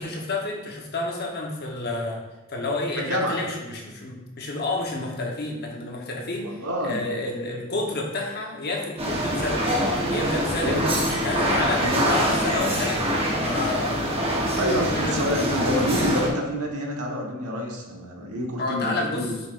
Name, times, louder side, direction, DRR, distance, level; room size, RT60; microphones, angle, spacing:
voice 1, 0.0-2.2 2.5-9.6 10.0-13.0 13.4-15.9 18.6-19.3, left 2 dB, 45° left, 0 dB, 1.0 m, -30 dB
voice 2, 3.0-3.4 6.4-7.1 10.6-10.9 11.8-12.1 14.6-19.3, equal, 80° right, 0 dB, 1.3 m, -28 dB
sound 1, 9.0-16.3, equal, 25° right, 1.0 m, -24 dB
6.5 x 5.8 x 2.5 m, 1.1 s
head